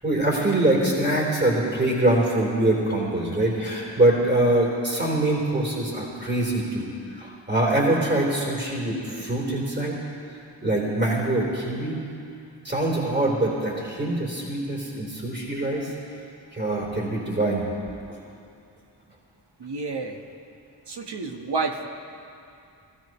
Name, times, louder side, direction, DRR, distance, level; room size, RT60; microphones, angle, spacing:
voice 1, 0.0-6.9 7.1-10.0 10.6-12.0 12.6-15.9 16.5-17.7 18.1-18.2, right 1 dB, 25° right, -3 dB, 3.9 m, -24 dB
voice 2, 19.6-20.2 20.9-21.9, right 3 dB, 65° right, 4 dB, 1.3 m, -30 dB
20.5 x 13.5 x 3.1 m, 2.6 s
cardioid pair, 45°, 44 cm